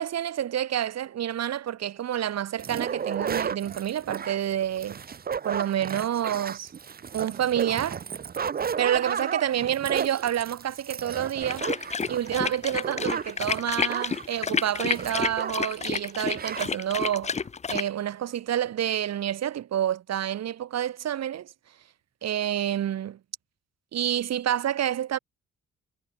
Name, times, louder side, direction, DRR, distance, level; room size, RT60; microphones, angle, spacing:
voice 1, 0.0-5.0 5.4-6.7 7.1-8.0 8.8-11.7 12.1-17.4 17.7-21.5 22.2-23.2 23.9-25.2, right 11 dB, 60° right, 1.4 m, -28 dB
sound 1, 2.6-15.8 16.0-16.1 16.3-16.7, right 7 dB, 30° right, 0.7 m, -34 dB
sound 2, 11.4-17.9, left 5 dB, 20° left, 0.6 m, -30 dB
cardioid pair, 90°, 30 cm